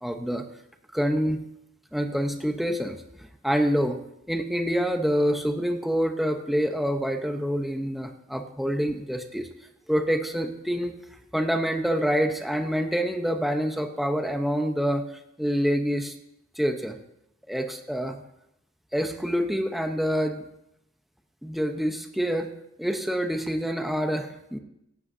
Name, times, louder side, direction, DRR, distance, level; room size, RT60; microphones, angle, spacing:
voice 1, 0.0-0.4 0.9-1.4 1.9-3.0 3.4-4.0 4.3-9.5 9.9-10.9 11.3-15.0 15.4-16.1 16.6-17.0 17.5-18.2 18.9-20.4 21.4-22.5 22.8-24.6, equal, ahead, 4 dB, 0.9 m, -26 dB
24.5 x 12.0 x 2.8 m, 0.82 s
head